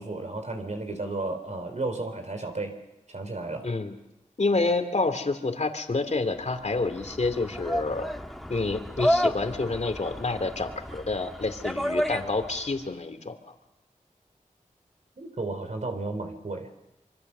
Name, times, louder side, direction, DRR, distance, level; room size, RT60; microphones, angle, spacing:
voice 1, 0.0-2.8 3.1-3.7 15.2-16.7, right 2 dB, 60° right, 5 dB, 3.6 m, -33 dB
voice 2, 3.6-3.9 4.4-8.1 8.5-13.3, left 3 dB, 55° left, 8 dB, 2.7 m, -28 dB
sound 1, 6.4-12.7, equal, ahead, 1.7 m, -31 dB
26.0 x 24.5 x 6.8 m, 0.90 s
wide cardioid pair, 55°, 14 cm